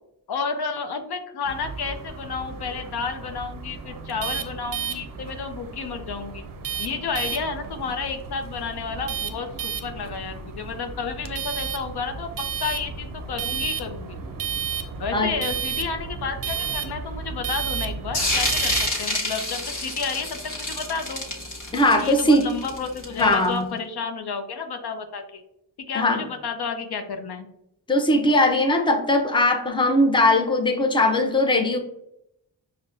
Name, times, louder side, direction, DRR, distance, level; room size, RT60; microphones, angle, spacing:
voice 1, 0.3-6.4 6.8-14.2 15.0-21.2 22.0-25.4 25.9-27.5, left 5 dB, 65° left, 7 dB, 0.5 m, -31 dB
sound 1, 1.5-18.9, right 6 dB, 55° right, 0.5 m, -33 dB
sound 2, 18.1-23.5, left 2 dB, 45° left, 1.2 m, -28 dB
voice 2, 21.7-22.4 23.2-23.7 25.9-26.2 27.9-31.8, left 1 dB, 10° left, 3 dB, 0.5 m, -20 dB
5.2 x 2.1 x 2.5 m, 0.80 s
cardioid pair, 55°, 42 cm